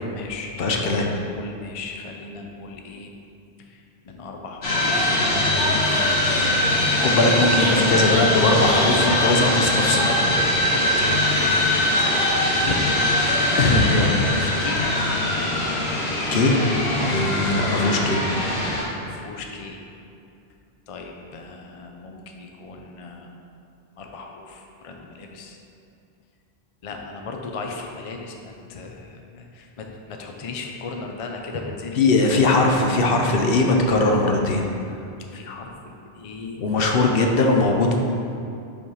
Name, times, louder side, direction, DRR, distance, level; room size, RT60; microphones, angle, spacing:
voice 1, 0.0-3.1 3.6-6.6 7.5-7.7 8.6-9.7 10.0-12.8 13.1-14.8 17.0-17.2 19.0-19.8 20.9-23.3 24.0-25.6 26.8-32.0 35.3-37.3, left 4 dB, 40° left, 2 dB, 0.5 m, -36 dB
voice 2, 0.6-1.1 7.0-10.0 13.6-14.1 16.3-16.6 17.0-18.2 32.0-34.6 36.6-38.0, left 2 dB, 65° left, 2 dB, 0.9 m, -20 dB
sound 1, 4.6-18.8, left 1 dB, 80° left, 1.4 m, -22 dB
5.3 x 4.8 x 5.5 m, 2.6 s
omnidirectional pair, 1.1 m